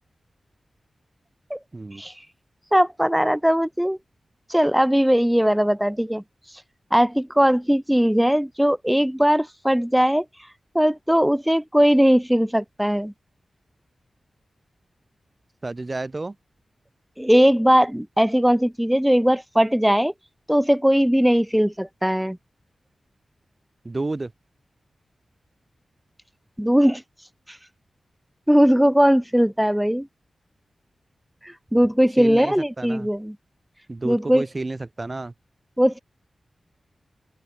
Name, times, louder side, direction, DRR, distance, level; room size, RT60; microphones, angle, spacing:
voice 1, 2.7-4.0 4.5-6.2 6.9-10.2 10.7-13.1 17.2-20.1 20.5-22.4 26.6-27.0 27.5-27.6 28.5-30.1 31.4-33.4 34.0-34.4 35.8-36.0, equal, 5° right, 1.1 m, -19 dB
voice 2, 15.6-16.4 23.8-24.3 32.2-33.1 33.9-35.3, right 2 dB, 30° right, 3.1 m, -31 dB
open air
wide cardioid pair, 75°, 0 cm